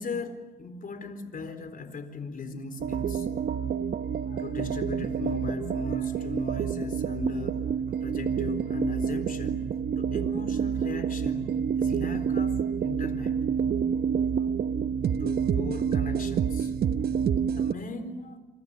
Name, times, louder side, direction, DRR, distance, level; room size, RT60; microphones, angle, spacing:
voice 1, 0.0-3.3 4.2-9.7 10.0-12.6 12.8-13.4 15.2-16.8 17.5-18.4, left 4 dB, 45° left, 9 dB, 4.2 m, -38 dB
sound 1, 2.8-17.7, right 7 dB, 50° right, 1.1 m, -28 dB
28.5 x 24.5 x 8.6 m, 1.1 s
cardioid pair, 90°, 20 cm